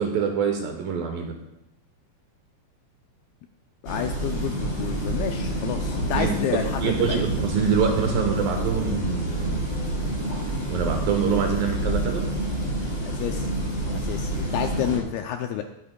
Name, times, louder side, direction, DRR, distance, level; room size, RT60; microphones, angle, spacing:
voice 1, 0.0-1.4 6.2-9.6 10.7-12.3, right 6 dB, 70° right, 3 dB, 2.4 m, -25 dB
voice 2, 3.8-7.2 13.1-13.5 14.0-15.6, left 10 dB, 80° left, 5 dB, 2.2 m, -30 dB
sound 1, 3.8-15.0, right 1 dB, 20° left, 2.9 m, -28 dB
20.0 x 8.6 x 2.2 m, 0.88 s
omnidirectional pair, 4.8 m